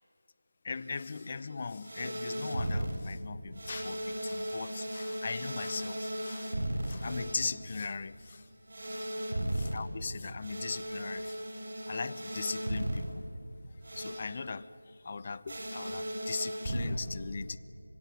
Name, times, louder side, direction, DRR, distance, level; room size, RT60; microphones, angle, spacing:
voice 1, 0.6-6.5 6.8-8.5 9.5-11.4 11.9-13.2 14.0-17.6, left 4 dB, 30° left, 0.7 m, -39 dB
sound 1, 0.7-3.0 3.5-9.9 10.4-13.0 13.8-14.4 15.5-16.9, right 1 dB, 55° right, 6.7 m, -36 dB
26.0 x 22.0 x 8.6 m
figure-of-eight pair, 170°, 0 cm